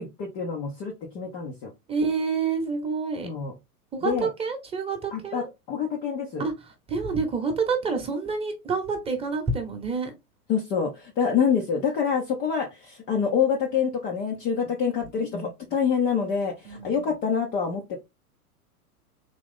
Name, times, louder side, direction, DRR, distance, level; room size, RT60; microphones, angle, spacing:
voice 1, 0.0-1.7 3.2-3.5 4.0-4.3 5.1-6.4 10.5-18.0, left 6 dB, 25° left, 0.5 m, -26 dB
voice 2, 1.9-3.3 3.9-5.5 6.4-6.5 6.9-10.1 16.6-17.0, right 4 dB, 10° right, 0.9 m, -28 dB
3.8 x 2.9 x 3.4 m
hypercardioid pair, 110°, 46 cm